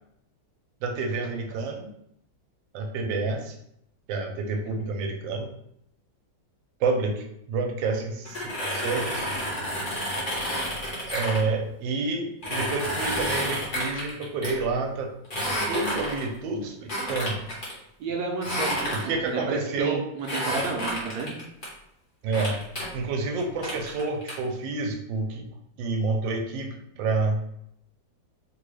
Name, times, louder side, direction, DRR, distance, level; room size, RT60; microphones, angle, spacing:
voice 1, 0.8-1.9 2.7-3.6 4.1-5.5 6.8-9.3 11.1-15.1 15.7-17.5 18.9-20.0 22.2-22.6 22.9-25.5 25.8-27.4, right 3 dB, 85° right, 3 dB, 1.3 m, -29 dB
sound 1, 8.3-11.4 12.4-14.5 15.2-16.4 16.9-17.7 18.4-19.3 20.2-21.7 22.3-22.9 23.4-24.3, equal, 35° left, 0.9 m, -30 dB
voice 2, 18.0-21.3, right 4 dB, 70° right, 1 dB, 1.0 m, -31 dB
3.5 x 2.2 x 3.2 m, 0.76 s
omnidirectional pair, 2.0 m